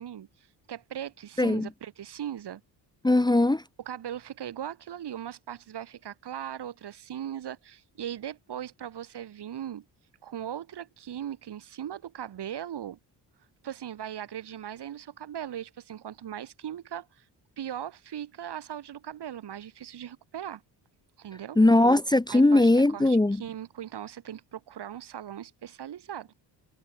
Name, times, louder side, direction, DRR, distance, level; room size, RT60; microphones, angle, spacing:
voice 1, 0.0-2.6 3.8-9.8 10.2-13.0 13.6-17.2 17.6-20.6 21.2-21.6 22.3-26.3, right 10 dB, 70° right, 7.8 m, -39 dB
voice 2, 1.4-1.7 3.0-3.6 21.6-23.4, left 2 dB, 10° left, 1.0 m, -20 dB
cardioid pair, 80°, 42 cm